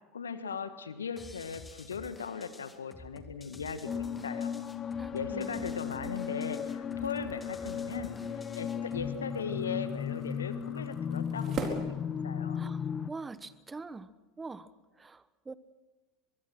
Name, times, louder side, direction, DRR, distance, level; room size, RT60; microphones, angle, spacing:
voice 1, 0.1-4.5 5.1-8.1 8.5-11.8 12.2-12.6, left 6 dB, 80° left, 10 dB, 1.6 m, -38 dB
sound 1, 1.2-9.2, left 2 dB, 15° left, 2.2 m, -51 dB
sound 2, 3.9-13.1, left 7 dB, 30° left, 1.0 m, -36 dB
voice 2, 5.0-5.6 12.5-14.1 14.4-15.6, right 3 dB, 15° right, 15 dB, 1.2 m, -44 dB
sound 3, 6.8-12.8, right 5 dB, 40° right, 4.4 m, -44 dB
23.5 x 22.5 x 6.2 m, 1.2 s
figure-of-eight pair, 75°, 0 cm